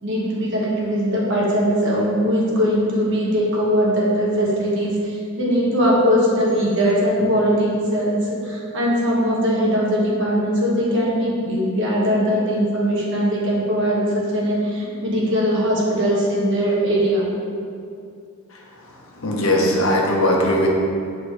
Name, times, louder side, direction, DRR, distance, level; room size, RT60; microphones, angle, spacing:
voice 1, 0.0-17.3, equal, 60° right, -4 dB, 1.4 m, -20 dB
voice 2, 19.2-20.7, left 1 dB, 75° left, -1 dB, 1.0 m, -19 dB
8.4 x 4.0 x 3.3 m, 2.4 s
head